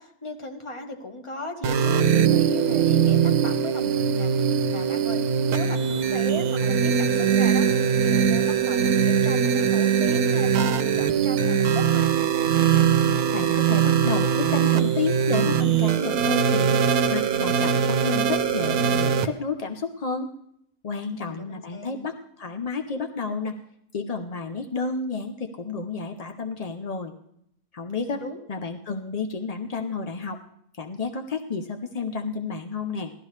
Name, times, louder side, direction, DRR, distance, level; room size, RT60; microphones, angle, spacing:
voice 1, 0.0-7.7 8.0-12.1 21.1-22.1 28.0-28.4, left 1 dB, 20° left, 4 dB, 1.1 m, -37 dB
sound 1, 1.6-19.3, right 7 dB, 85° right, 1.2 m, -21 dB
voice 2, 13.3-20.3 20.8-23.6 23.9-27.1 27.7-28.2 28.5-30.4 30.7-33.1, left 4 dB, 55° left, 6 dB, 0.4 m, -31 dB
16.0 x 12.5 x 3.2 m, 0.73 s
omnidirectional pair, 1.5 m